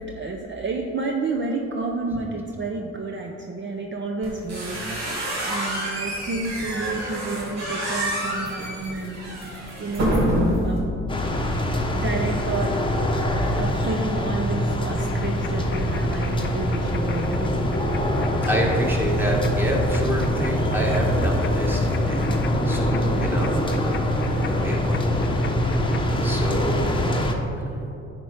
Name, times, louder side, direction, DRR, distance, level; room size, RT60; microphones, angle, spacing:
voice 1, 0.0-10.3 10.6-10.9 11.6-12.8 13.6-17.9 26.5-26.8, right 3 dB, 40° right, 1 dB, 0.7 m, -30 dB
sound 1, 4.2-10.8, equal, 60° right, 2.0 m, -27 dB
sound 2, 11.1-27.3, equal, 15° left, 0.9 m, -23 dB
sound 3, 15.0-26.0, left 6 dB, 40° left, 0.5 m, -41 dB
voice 2, 18.1-22.3 22.6-23.8 24.4-25.0 26.2-26.8 27.2-27.3, equal, 5° right, -2 dB, 1.6 m, -28 dB
10.0 x 4.5 x 4.9 m, 2.9 s
cardioid pair, 90°, 30 cm